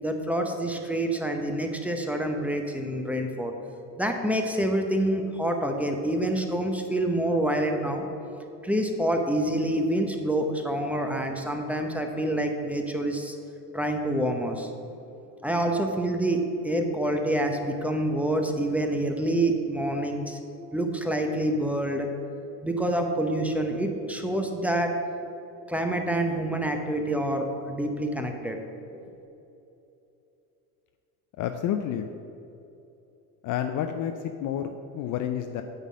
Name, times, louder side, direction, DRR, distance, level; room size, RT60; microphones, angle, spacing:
voice 1, 0.0-3.5 4.0-8.0 8.6-13.4 13.7-14.7 15.4-20.4 20.7-22.1 22.6-24.9 25.7-28.6 29.0-29.1, right 1 dB, 5° right, 3 dB, 0.8 m, -27 dB
voice 2, 31.4-32.1 33.4-34.1 34.4-35.6, left 10 dB, 40° left, 7 dB, 0.5 m, -29 dB
9.1 x 4.1 x 6.2 m, 2.9 s
hypercardioid pair, 85°, 49 cm